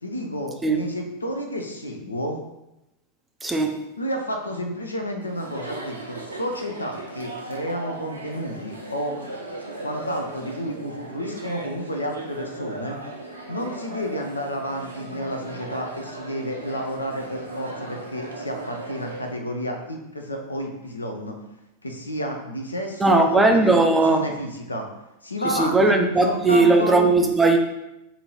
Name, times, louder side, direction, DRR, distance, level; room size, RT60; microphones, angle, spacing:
voice 1, 0.0-2.4 4.0-9.2 9.8-13.0 13.5-21.4 21.8-24.9 25.2-26.0 26.2-27.0, equal, 80° left, 3 dB, 0.5 m, -31 dB
voice 2, 3.4-3.9 23.0-24.3 25.4-27.6, right 2 dB, 10° right, 3 dB, 0.4 m, -18 dB
Chatter, 5.2-19.3, right 2 dB, 80° right, 0.6 m, -37 dB
2.7 x 2.7 x 4.3 m, 0.90 s
figure-of-eight pair, 90°, 0 cm